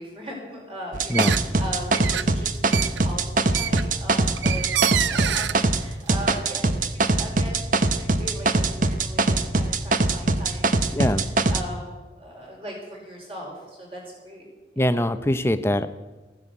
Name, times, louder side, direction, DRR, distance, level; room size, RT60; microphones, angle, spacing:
voice 1, 0.0-4.7 5.0-14.4, equal, 30° right, -2 dB, 5.0 m, -39 dB
sound 1, 0.9-5.8 6.1-11.6, right 2 dB, 45° right, 0.8 m, -22 dB
sound 2, 1.1-1.6 1.9-5.6, right 10 dB, 85° right, 0.5 m, -27 dB
voice 2, 10.9-11.2 14.8-15.9, left 1 dB, 15° left, 11 dB, 0.6 m, -23 dB
15.0 x 9.7 x 8.1 m, 1.2 s
head